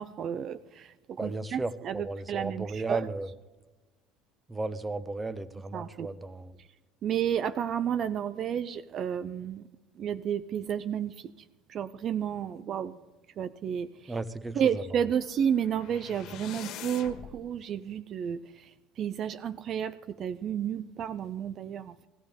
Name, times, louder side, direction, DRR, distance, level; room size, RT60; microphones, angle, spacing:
voice 1, 0.0-3.0 5.7-6.1 7.0-9.6 10.0-11.3 11.7-12.9 13.4-14.2 14.5-18.7 19.0-22.1, right 8 dB, 50° right, 13 dB, 0.5 m, -31 dB
voice 2, 1.2-3.3 4.5-6.5 14.1-15.0, right 3 dB, 15° right, 13 dB, 0.9 m, -35 dB
sound 1, 15.2-17.3, left 9 dB, 60° left, 1.7 m, -44 dB
18.0 x 14.5 x 3.6 m, 1.2 s
hypercardioid pair, 75°, 0 cm